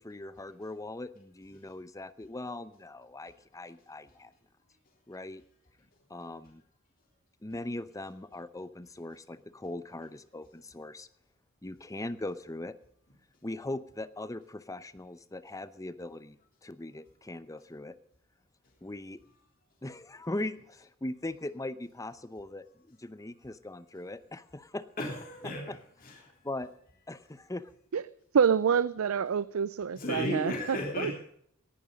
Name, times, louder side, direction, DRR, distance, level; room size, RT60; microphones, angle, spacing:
voice 1, 0.0-4.3 5.1-5.4 6.1-6.6 7.4-11.1 11.6-12.7 13.4-16.4 16.6-17.9 18.8-19.2 19.8-24.8 25.4-25.8 26.4-26.7 27.1-27.7, left 2 dB, 15° left, 14 dB, 0.7 m, -40 dB
voice 2, 25.0-25.7 26.0-26.2 29.9-31.2, left 1 dB, 45° left, -1 dB, 3.4 m, -34 dB
voice 3, 28.3-31.1, right 7 dB, 85° right, 17 dB, 0.5 m, -27 dB
18.5 x 11.0 x 5.2 m, 0.68 s
head